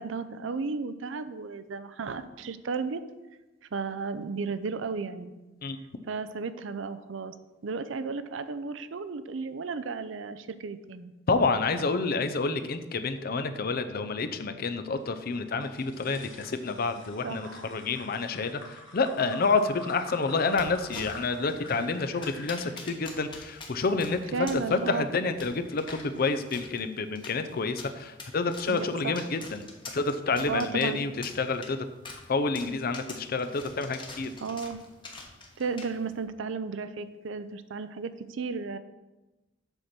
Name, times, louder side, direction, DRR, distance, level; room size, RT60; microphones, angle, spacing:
voice 1, 0.0-3.0 3.7-5.3 6.1-7.3 7.6-11.1 17.2-17.7 24.3-25.1 28.7-29.3 30.5-31.1 34.4-34.8 35.6-38.8, right 4 dB, 75° right, 12 dB, 0.5 m, -34 dB
voice 2, 11.3-18.6 18.9-24.2 24.7-29.6 29.9-31.1 31.4-31.8 32.3-34.3, left 4 dB, 50° left, 9 dB, 0.6 m, -28 dB
sound 1, 15.6-24.8 25.3-26.3, left 3 dB, 75° left, 1.5 m, -48 dB
sound 2, 20.5-36.2, left 3 dB, 25° left, 1.1 m, -47 dB
7.9 x 4.2 x 6.0 m, 1.1 s
head